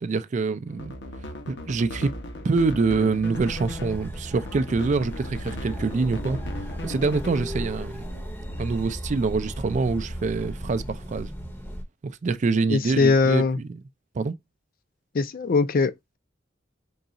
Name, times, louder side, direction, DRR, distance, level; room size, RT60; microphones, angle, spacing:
voice 1, 0.0-0.9 1.5-2.1 2.4-6.4 6.8-8.0 8.6-11.3 12.0-13.8 14.2-14.3, right 4 dB, 40° right, 0.4 m, -25 dB
sound 1, 0.7-7.8, left 1 dB, 70° left, 0.9 m, -37 dB
sound 2, 3.3-11.8, equal, 10° left, 0.7 m, -36 dB
voice 2, 12.7-13.6 15.1-16.2, left 4 dB, 50° left, 0.4 m, -21 dB
3.9 x 2.3 x 3.9 m
head